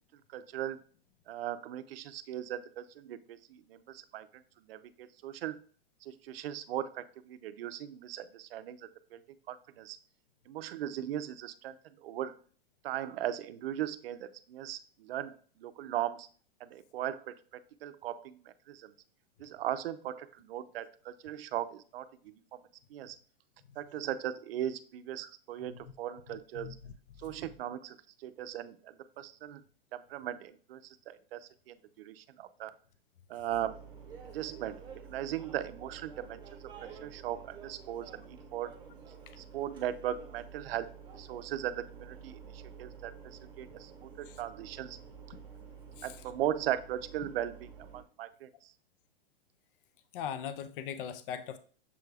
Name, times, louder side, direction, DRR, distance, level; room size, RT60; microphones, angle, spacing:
voice 1, 0.3-0.8 1.3-4.3 4.7-5.6 6.0-8.8 9.1-9.2 9.5-10.0 10.5-12.3 12.8-16.3 16.6-17.3 17.8-18.9 19.4-22.6 22.9-23.2 23.8-26.7 27.2-29.6 29.9-32.7 33.3-33.8 34.2-34.8 35.1-36.4 36.8-38.7 39.4-40.9 41.1-45.0 46.0-48.7, right 11 dB, 80° right, 12 dB, 0.5 m, -38 dB
voice 2, 25.6-26.0 26.5-26.9 27.2-27.4 44.2-44.4 46.0-46.2 47.2-47.3 50.1-51.6, left 8 dB, 65° left, 11 dB, 0.5 m, -40 dB
sound 1, 33.5-48.0, right 6 dB, 15° right, 0.9 m, -50 dB
6.8 x 2.3 x 3.3 m, 0.44 s
supercardioid pair, 150°, 29 cm